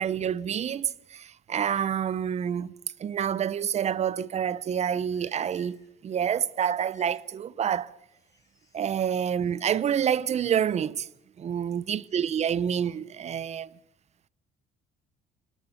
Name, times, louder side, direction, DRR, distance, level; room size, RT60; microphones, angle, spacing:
voice 1, 0.0-5.8 6.0-7.9 8.7-11.1 11.4-13.7, right 8 dB, 40° right, 0.8 m, -28 dB
Livestock farm animals working animals, 4.6-6.0 6.3-7.3 7.6-8.9 9.4-9.8, left 2 dB, 20° left, 4.5 m, -61 dB
26.0 x 18.5 x 7.1 m
cardioid pair, 110°, 17 cm